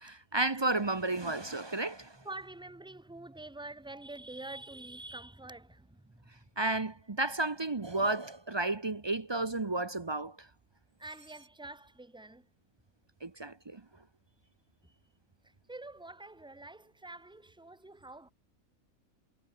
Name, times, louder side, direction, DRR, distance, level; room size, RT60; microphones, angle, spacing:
voice 1, 0.0-2.1 6.6-10.4 13.2-13.8, right 2 dB, 25° right, 0.6 m, -32 dB
voice 2, 1.9-6.4 11.0-12.5 15.4-18.3, right 2 dB, 5° right, 1.3 m, -47 dB
omnidirectional pair, 1.5 m